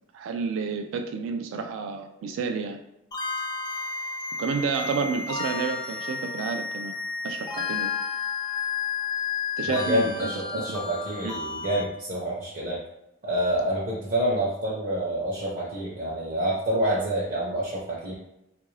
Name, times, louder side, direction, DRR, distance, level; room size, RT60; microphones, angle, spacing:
voice 1, 0.1-2.8 4.4-7.0 7.2-7.9 9.6-10.8 11.2-11.3, right 5 dB, 85° right, 6 dB, 0.3 m, -30 dB
sound 1, 3.1-11.8, left 5 dB, 20° left, 0.3 m, -32 dB
voice 2, 9.7-12.8 13.2-18.1, right 1 dB, 45° right, -5 dB, 0.6 m, -27 dB
3.5 x 2.5 x 3.1 m, 0.85 s
head